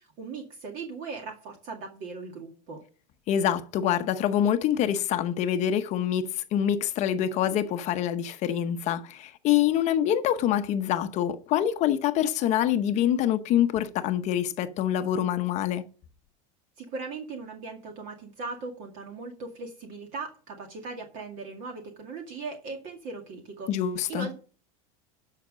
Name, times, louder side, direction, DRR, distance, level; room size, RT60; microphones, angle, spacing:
voice 1, 0.2-2.8 16.8-23.7 24.1-24.4, right 4 dB, 45° right, 2.0 m, -38 dB
voice 2, 3.3-15.9 23.7-24.3, left 10 dB, 40° left, 0.9 m, -25 dB
12.0 x 5.8 x 6.2 m
supercardioid pair, 150°, 19 cm